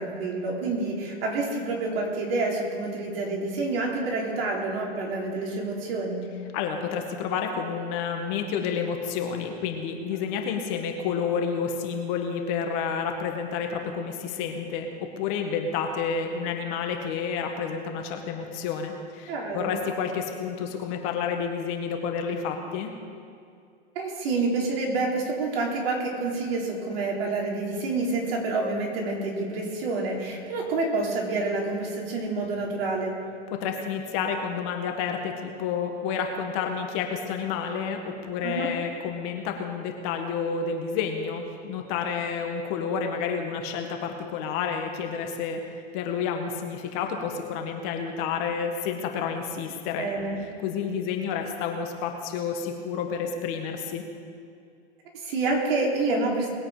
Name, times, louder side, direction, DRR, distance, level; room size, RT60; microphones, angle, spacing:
voice 1, 0.0-6.2 19.3-19.7 24.0-33.1 38.4-38.7 50.0-50.4 55.1-56.5, right 3 dB, 60° right, -1 dB, 3.7 m, -28 dB
voice 2, 6.5-14.9 15.2-22.9 33.5-50.1 50.4-54.0, left 6 dB, 45° left, 4 dB, 1.8 m, -30 dB
20.5 x 8.5 x 5.1 m, 2.4 s
hypercardioid pair, 130°, 33 cm